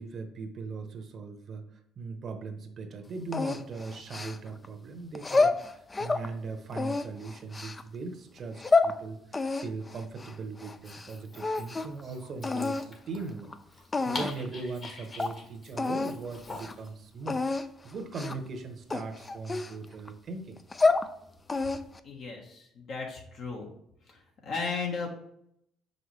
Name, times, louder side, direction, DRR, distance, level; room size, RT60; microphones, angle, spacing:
voice 1, 0.0-1.7 2.0-13.5 14.0-20.6, right 3 dB, 50° right, 6 dB, 0.9 m, -39 dB
sound 1, 3.3-4.7 5.2-6.3 6.7-7.8 8.4-8.9 9.3-11.1 11.4-12.0 12.4-12.9 13.5-13.6 13.9-14.5 14.8-14.9 15.2-15.3 15.8-16.2 16.5-16.7 17.3-17.7 18.1-18.5 18.9-20.1 20.6-21.1 21.5-22.0, left 3 dB, 25° left, 0.4 m, -28 dB
Dog, 10.7-16.9, left 3 dB, 40° left, 1.6 m, -45 dB
voice 2, 22.0-23.7 24.1-25.1, left 4 dB, 60° left, 0 dB, 1.4 m, -35 dB
5.7 x 5.3 x 3.2 m, 0.71 s
cardioid pair, 90°, 0 cm